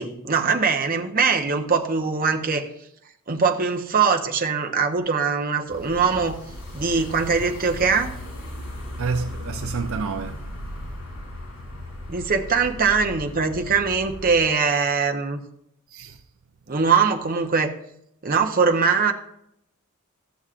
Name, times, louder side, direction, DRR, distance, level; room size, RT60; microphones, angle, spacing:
voice 1, 0.0-2.7 3.3-6.4 6.7-8.2 12.1-15.4 16.7-17.7 18.2-19.1, right 5 dB, 40° right, 0.8 m, -22 dB
sound 1, 5.7-14.4, left 1 dB, 85° left, 3.3 m, -37 dB
voice 2, 9.0-11.0 15.9-16.2, right 4 dB, 65° right, 0.5 m, -30 dB
13.5 x 7.1 x 2.5 m
head